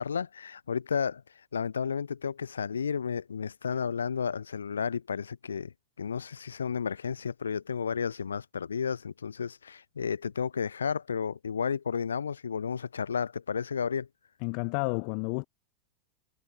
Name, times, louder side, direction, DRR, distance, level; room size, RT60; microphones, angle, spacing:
voice 1, 0.0-14.1, left 6 dB, 70° left, 0.4 m, -32 dB
voice 2, 14.4-15.5, left 40 dB or more, 45° left, 1.4 m, -31 dB
figure-of-eight pair, 90°, 0 cm